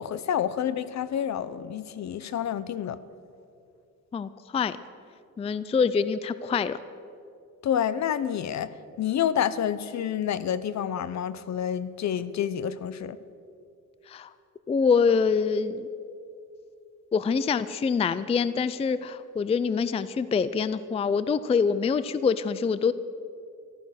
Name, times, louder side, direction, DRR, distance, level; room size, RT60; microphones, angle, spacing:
voice 1, 0.0-3.0 7.6-13.2, left 9 dB, 60° left, 16 dB, 0.7 m, -28 dB
voice 2, 4.1-4.8 5.4-6.8 14.1-14.3 14.7-15.9 17.1-22.9, left 5 dB, 20° left, 15 dB, 0.3 m, -25 dB
14.5 x 13.0 x 6.4 m, 2.5 s
cardioid pair, 135°, 32 cm